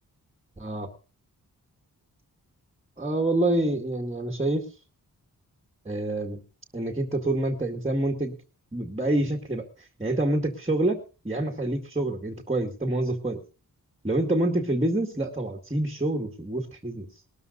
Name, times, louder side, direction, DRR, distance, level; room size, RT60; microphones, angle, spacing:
voice 1, 0.6-0.9 3.0-4.7 5.9-6.4 6.7-8.4 8.7-11.0 11.2-13.4 14.0-17.1, right 1 dB, 15° right, 2 dB, 2.0 m, -27 dB
20.0 x 13.0 x 2.6 m, 0.35 s
wide cardioid pair, 80°, 37 cm